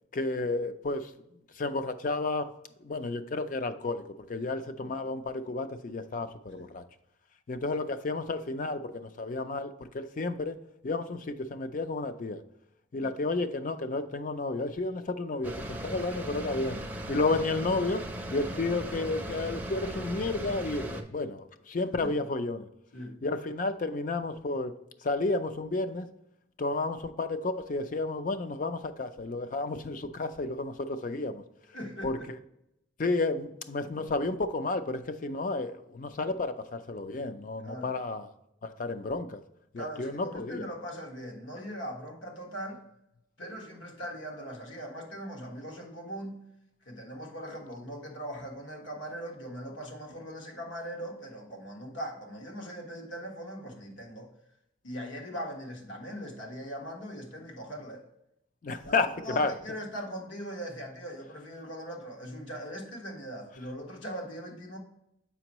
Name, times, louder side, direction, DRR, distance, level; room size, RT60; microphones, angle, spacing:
voice 1, 0.1-1.1 1.6-2.5 2.8-6.8 7.5-10.6 10.8-12.4 12.9-16.8 17.1-18.0 18.3-22.7 23.2-24.8 25.0-26.1 26.6-31.4 32.0-32.2 33.0-38.3 38.6-39.4 39.7-40.7 58.6-59.5, left 3 dB, 40° left, 10 dB, 0.4 m, -31 dB
sound 1, 15.4-21.0, equal, 10° right, 0.5 m, -38 dB
voice 2, 31.7-32.3 37.6-38.0 39.8-42.8 43.4-46.4 46.8-54.3 54.8-58.0 58.8-64.8, equal, 75° left, 1 dB, 1.4 m, -40 dB
6.9 x 5.3 x 2.9 m, 0.79 s
head